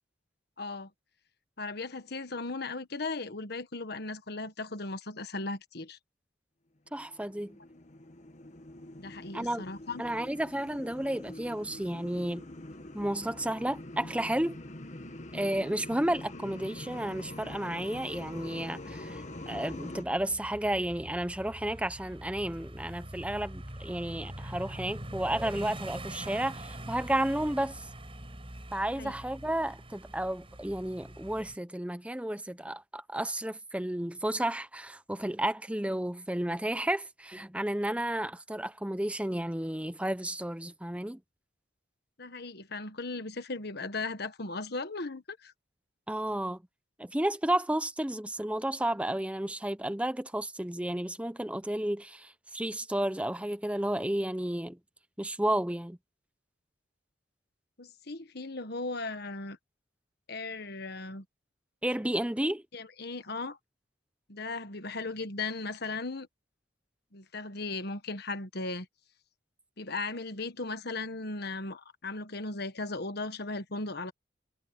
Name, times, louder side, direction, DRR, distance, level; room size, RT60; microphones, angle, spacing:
voice 1, 0.6-0.9 1.6-6.0 9.0-10.0 28.8-29.1 42.2-45.5 57.8-59.6 60.3-61.2 62.7-63.6 64.3-66.3 67.1-68.9 69.8-74.1, left 3 dB, 55° left, 1.5 m, -37 dB
sound 1, 6.9-20.0, left 1 dB, 40° left, 1.5 m, -44 dB
voice 2, 6.9-7.6 9.3-9.7 10.0-12.5 12.9-14.6 15.3-27.9 28.7-41.2 46.1-46.6 47.0-54.8 55.2-56.0 61.8-62.6, right 1 dB, 5° right, 0.8 m, -32 dB
sound 2, 17.1-31.6, right 1 dB, 30° right, 6.0 m, -45 dB
head